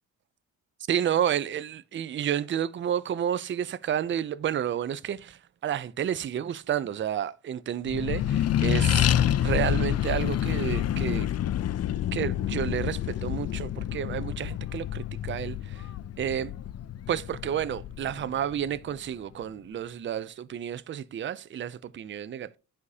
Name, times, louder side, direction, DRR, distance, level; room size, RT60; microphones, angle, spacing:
voice 1, 0.9-9.1 9.4-11.3 12.1-15.9 16.2-16.5 17.1-22.6, right 9 dB, 35° right, 0.4 m, -30 dB
Accelerating revving vroom, 7.9-18.8, left 11 dB, 50° left, 0.4 m, -28 dB
10.5 x 4.8 x 2.7 m
cardioid pair, 115°, 35 cm